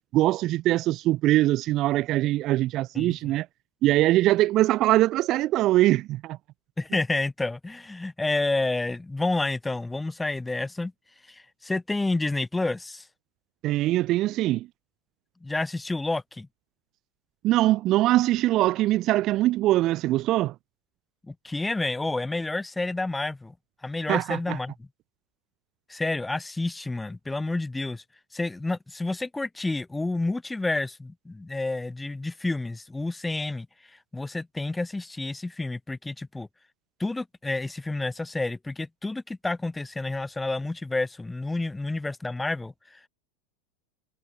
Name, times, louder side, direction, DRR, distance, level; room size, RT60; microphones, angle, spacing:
voice 1, 0.1-3.5 3.8-6.4 13.6-14.7 17.4-20.5 24.1-24.6, right 16 dB, 35° right, 0.6 m, -22 dB
voice 2, 2.9-3.3 6.8-10.9 11.3-13.0 15.4-16.5 21.3-23.5 23.8-24.9 25.9-28.0 28.3-33.7 34.1-36.5 37.0-43.1, left 2 dB, 5° left, 1.3 m, -29 dB
supercardioid pair, 155°, 0 cm